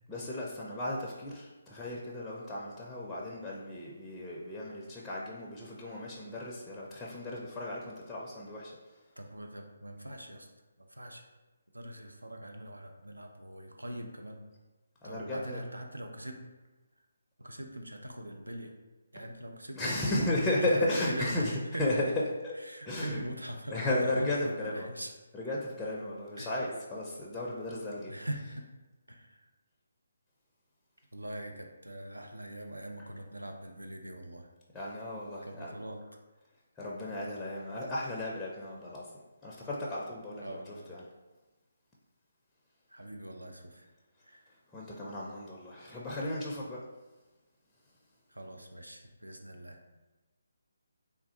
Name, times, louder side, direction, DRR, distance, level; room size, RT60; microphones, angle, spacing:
voice 1, 0.1-8.7 15.0-15.6 19.8-21.5 21.8-22.1 22.4-22.5 22.9-23.2 23.7-24.9 25.3-28.1 34.7-35.7 36.8-39.1 39.4-40.6 40.9-41.0 44.7-46.8, left 1 dB, 10° left, -5 dB, 0.4 m, -34 dB
voice 2, 9.2-10.5 10.8-11.3 11.7-14.4 15.0-16.5 17.4-18.7 19.1-20.3 20.6-22.0 22.6-25.1 25.5-25.6 26.4-26.5 28.1-28.7 29.1-29.5 31.1-34.5 35.4-36.0 40.4-40.9 42.9-43.9 44.2-44.5 48.3-49.8, right 1 dB, 85° right, 3 dB, 0.5 m, -42 dB
3.2 x 2.4 x 2.7 m, 1.2 s
figure-of-eight pair, 145°, 0 cm